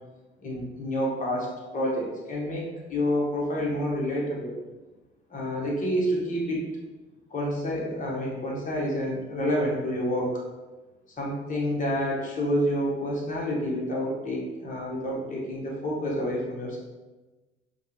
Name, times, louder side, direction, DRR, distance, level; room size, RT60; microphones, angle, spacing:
voice 1, 0.4-1.5 1.7-4.5 5.3-6.7 7.3-10.5 11.2-16.8, equal, 40° left, -3 dB, 1.3 m, -28 dB
4.5 x 2.3 x 3.1 m, 1.2 s
cardioid pair, 90°, 20 cm